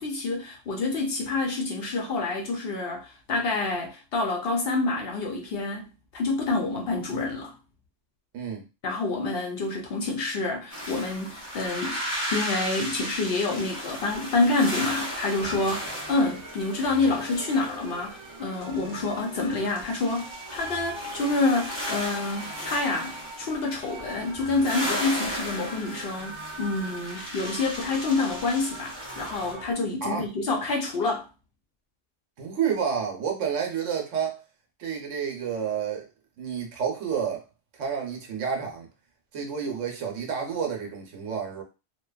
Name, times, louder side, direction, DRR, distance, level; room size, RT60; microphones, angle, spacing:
voice 1, 0.0-5.9 6.1-7.5 8.8-12.0 12.3-31.3, left 3 dB, 60° left, 0.7 m, -27 dB
voice 2, 8.3-8.7 30.0-30.3 32.4-34.4 34.8-36.1 36.4-37.4 37.8-38.9 39.3-41.6, right 7 dB, 75° right, 1.0 m, -30 dB
sound 1, 10.7-29.5, equal, 15° left, 0.6 m, -36 dB
sound 2, 15.4-29.7, right 2 dB, 40° right, 0.4 m, -42 dB
2.8 x 2.2 x 2.3 m
omnidirectional pair, 1.3 m